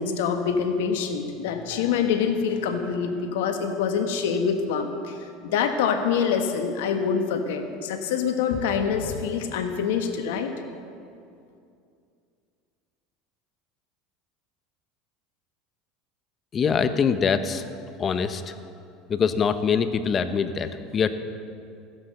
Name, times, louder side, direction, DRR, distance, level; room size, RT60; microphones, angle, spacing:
voice 1, 0.0-5.2 5.4-10.5, left 6 dB, 80° left, 6 dB, 1.4 m, -25 dB
voice 2, 16.5-17.6 18.0-18.5 19.1-21.1, left 6 dB, 35° left, 10 dB, 0.9 m, -24 dB
15.0 x 10.5 x 6.6 m, 2.4 s
supercardioid pair, 100°, 0 cm